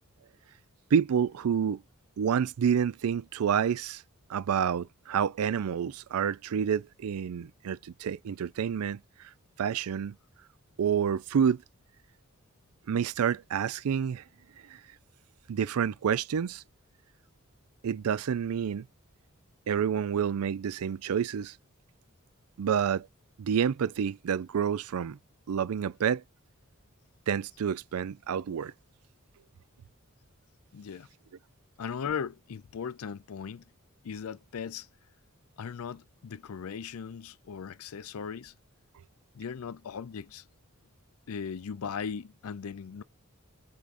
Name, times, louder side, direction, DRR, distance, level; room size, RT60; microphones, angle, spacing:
voice 1, 0.9-1.8 2.2-4.0 4.3-9.0 9.6-10.1 10.8-11.6 12.9-14.2 15.5-16.6 17.8-18.8 19.7-21.5 22.6-23.1 23.4-25.2 25.5-26.2 27.3-28.7, right 7 dB, 85° right, 0.4 m, -28 dB
voice 2, 30.7-31.1 31.8-33.6 34.0-34.9 35.6-38.5 39.3-40.4 41.3-43.0, left 6 dB, 85° left, 0.5 m, -38 dB
4.9 x 3.6 x 2.6 m
head